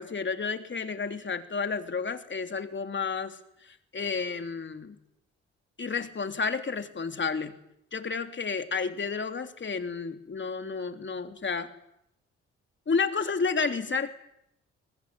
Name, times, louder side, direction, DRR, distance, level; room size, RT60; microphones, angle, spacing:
voice 1, 0.0-5.0 5.8-7.5 7.9-11.7 12.9-14.1, left 5 dB, 40° left, 7 dB, 3.2 m, -31 dB
23.0 x 20.0 x 9.8 m, 0.81 s
supercardioid pair, 60°, 29 cm